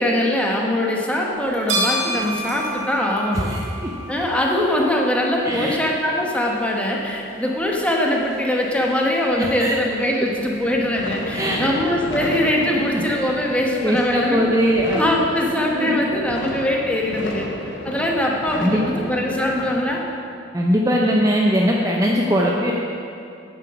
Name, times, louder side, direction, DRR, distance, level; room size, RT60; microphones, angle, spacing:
voice 1, 0.0-3.5 4.1-14.4 14.9-17.5 17.8-20.0, left 1 dB, 5° left, -1 dB, 1.1 m, -22 dB
sound 1, 1.3-15.2, right 1 dB, 85° right, 2.2 m, -34 dB
voice 2, 3.4-3.9 5.4-5.8 9.4-9.7 11.3-11.6 12.9-13.0 13.8-15.0 15.7-15.9 18.5-18.8 20.5-22.7, equal, 15° right, -2 dB, 0.6 m, -20 dB
sound 2, 10.3-19.9, left 1 dB, 65° left, 1.0 m, -33 dB
9.1 x 7.7 x 6.0 m, 2.6 s
head